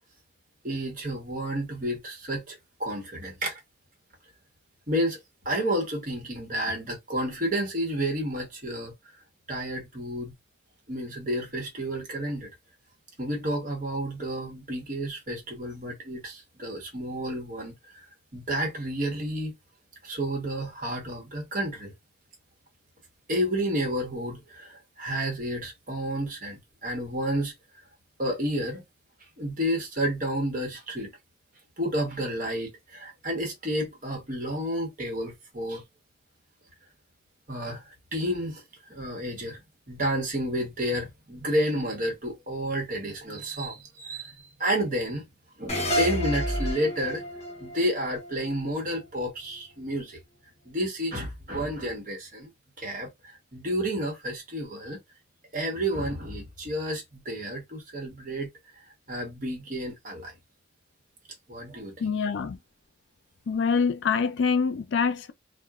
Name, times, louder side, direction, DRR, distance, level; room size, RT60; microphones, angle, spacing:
voice 1, 0.6-3.6 4.9-5.2 5.4-8.9 9.5-10.3 10.9-12.5 13.2-18.0 18.3-19.5 20.0-21.9 23.3-27.5 28.2-28.8 29.4-31.1 31.8-35.8 37.5-38.6 38.9-39.6 39.9-44.3 44.6-45.3 45.6-47.2 47.6-50.2 50.7-52.5 52.8-53.1 53.5-55.0 55.5-58.5 59.1-60.3 61.5-62.2, equal, 40° right, 1.0 m, -30 dB
sound 1, 45.7-49.0, equal, 35° left, 0.7 m, -30 dB
voice 2, 62.0-62.6 63.5-65.3, left 5 dB, 65° left, 0.4 m, -25 dB
2.9 x 2.1 x 2.3 m
head